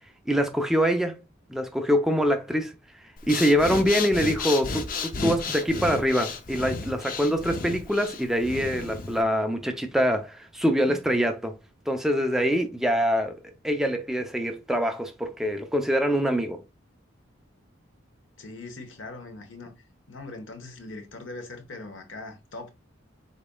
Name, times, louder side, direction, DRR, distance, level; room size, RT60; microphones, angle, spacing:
voice 1, 0.3-1.2 1.5-2.7 3.3-11.5 11.9-13.4 13.6-16.6, equal, ahead, 0.5 m, -24 dB
Breathing, 3.2-9.2, left 4 dB, 45° left, 0.5 m, -33 dB
voice 2, 18.4-19.7 20.1-22.7, left 2 dB, 75° left, 1.1 m, -41 dB
5.1 x 4.1 x 2.2 m
head